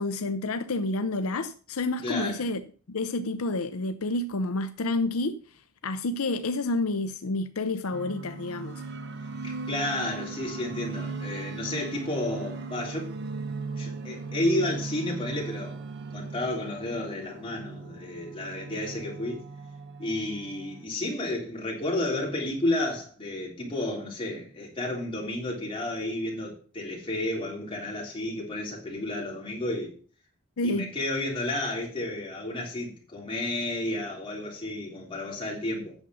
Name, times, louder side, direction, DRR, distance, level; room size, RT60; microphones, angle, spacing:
voice 1, 0.0-2.6 2.9-5.4 5.8-8.8 30.6-30.9, left 2 dB, 75° left, 0.6 m, -29 dB
voice 2, 2.0-2.3 9.4-13.1 13.8-15.8 16.1-19.4 20.0-29.9 30.6-36.0, left 1 dB, 25° left, 3.6 m, -31 dB
sound 1, 7.9-20.8, right 4 dB, 50° right, 0.9 m, -38 dB
8.8 x 7.1 x 6.2 m
head